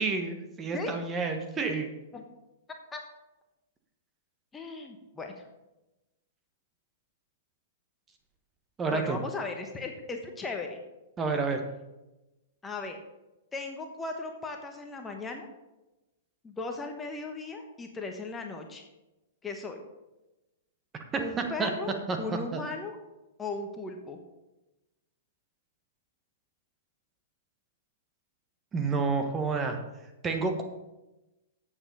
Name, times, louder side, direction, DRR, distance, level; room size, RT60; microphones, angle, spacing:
voice 1, 0.0-1.9 8.8-9.2 11.2-11.6 21.4-21.7 22.1-22.2 22.5-22.6 28.7-29.8 30.2-30.6, right 4 dB, 20° right, 5 dB, 1.3 m, -29 dB
voice 2, 4.5-5.5 8.8-10.8 12.6-13.0 13.5-15.5 16.4-18.8 19.4-19.8 21.2-23.0 23.4-24.2, left 3 dB, 15° left, 3 dB, 1.1 m, -37 dB
8.6 x 7.2 x 5.5 m, 1.0 s
hypercardioid pair, 115°, 0 cm